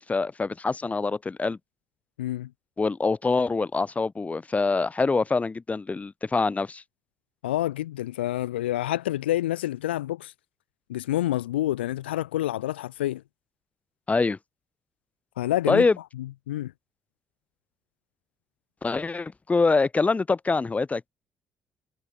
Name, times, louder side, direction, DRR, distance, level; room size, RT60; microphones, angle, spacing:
voice 1, 0.0-1.6 2.8-6.8 14.1-14.4 15.7-15.9 18.8-21.1, left 4 dB, 25° left, 1.2 m, -25 dB
voice 2, 2.2-2.5 7.4-10.3 10.9-13.2 15.4-15.9 16.5-16.7, left 14 dB, 80° left, 0.5 m, -28 dB
figure-of-eight pair, 45°, 6 cm